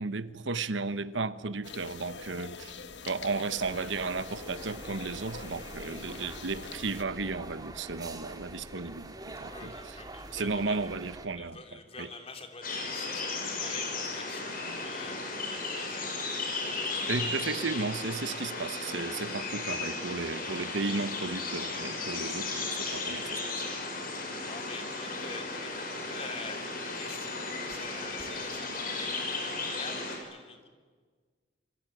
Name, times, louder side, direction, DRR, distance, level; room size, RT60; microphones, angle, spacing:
voice 1, 0.0-2.7 3.1-10.0 10.3-12.1 17.1-23.7, right 3 dB, 90° right, 1.1 m, -34 dB
sound 1, 1.6-7.0, left 5 dB, 75° left, 1.6 m, -44 dB
sound 2, 3.6-11.3, right 2 dB, 20° right, 2.1 m, -45 dB
voice 2, 9.4-10.8 11.4-15.2 15.5-16.1 24.0-30.7, left 4 dB, 35° left, 3.4 m, -46 dB
sound 3, 12.6-30.2, left 3 dB, 50° left, 6.4 m, -35 dB
27.5 x 24.0 x 9.1 m
head